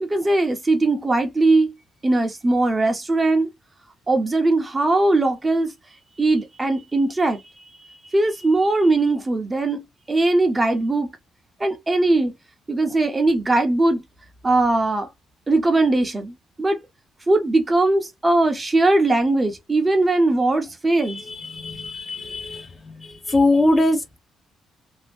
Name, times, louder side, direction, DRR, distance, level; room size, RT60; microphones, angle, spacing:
voice 1, 0.0-1.7 2.0-3.5 4.1-5.7 6.2-7.4 8.1-11.1 11.6-12.3 12.7-14.0 14.4-15.1 15.5-16.8 17.3-21.2, right 2 dB, 20° right, 0.7 m, -20 dB
voice 2, 21.3-22.7 23.0-24.2, left 2 dB, 25° left, 0.8 m, -21 dB
2.6 x 2.0 x 3.4 m
cardioid pair, 90°, 0 cm